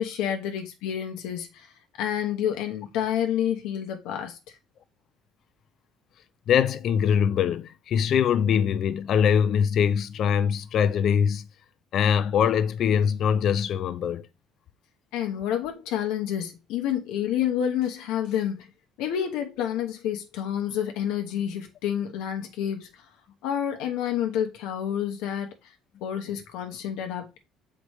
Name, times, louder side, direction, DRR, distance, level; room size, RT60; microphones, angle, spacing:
voice 1, 0.0-1.7 2.0-4.5 15.1-18.7 19.0-23.0 23.4-25.7 26.0-27.4, left 10 dB, 85° left, 1.1 m, -29 dB
voice 2, 6.5-11.5 11.9-14.3, left 8 dB, 50° left, 0.5 m, -23 dB
6.5 x 5.0 x 3.1 m
cardioid pair, 125°, 0 cm